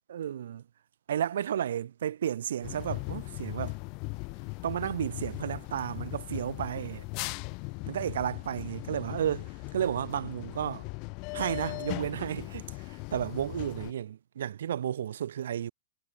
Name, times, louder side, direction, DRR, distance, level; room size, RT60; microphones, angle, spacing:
voice 1, 0.1-0.6 1.1-3.8 4.6-7.0 7.9-10.8 11.3-15.7, right 10 dB, 75° right, 0.8 m, -32 dB
sound 1, 2.6-13.9, left 31 dB, 30° left, 1.1 m, -39 dB
supercardioid pair, 170°, 0 cm